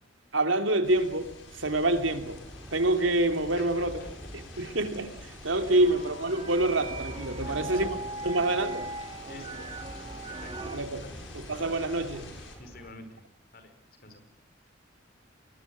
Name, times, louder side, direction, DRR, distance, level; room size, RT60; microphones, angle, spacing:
voice 1, 0.3-2.4 2.7-4.0 4.3-8.0 8.2-8.9 10.6-11.0 11.3-12.2, right 2 dB, 80° right, 6 dB, 3.1 m, -27 dB
sound 1, 0.8-12.6, left 3 dB, 75° left, 6.7 m, -49 dB
sound 2, 1.6-12.9, equal, 5° right, 3.0 m, -46 dB
sound 3, 2.1-10.8, right 2 dB, 25° right, 2.8 m, -41 dB
voice 2, 3.6-4.1 4.5-4.8 5.5-5.9 7.4-7.8 8.2-8.4 9.3-9.9 10.3-11.2 12.6-13.2 13.5-13.7 14.0-14.2, left 2 dB, 50° left, 9 dB, 4.9 m, -48 dB
27.0 x 21.0 x 8.6 m, 0.74 s
head